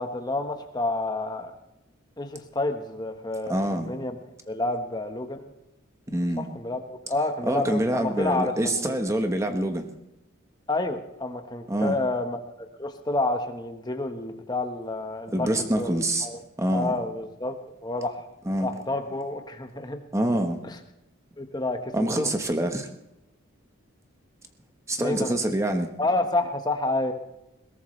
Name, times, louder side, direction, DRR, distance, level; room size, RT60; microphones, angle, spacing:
voice 1, 0.0-1.5 2.2-4.2 4.5-5.5 6.4-9.0 10.7-12.4 12.8-16.4 16.7-18.3 18.6-20.0 20.6-20.8 21.4-22.3 25.0-25.4 26.0-27.1, left 2 dB, 20° left, 6 dB, 1.2 m, -29 dB
voice 2, 3.5-3.9 6.1-6.5 7.5-9.9 11.7-12.0 15.3-16.3 16.6-16.9 18.5-18.7 20.1-20.6 21.9-22.9 24.9-25.9, right 1 dB, 15° right, 6 dB, 1.2 m, -25 dB
21.0 x 17.5 x 3.3 m, 0.90 s
head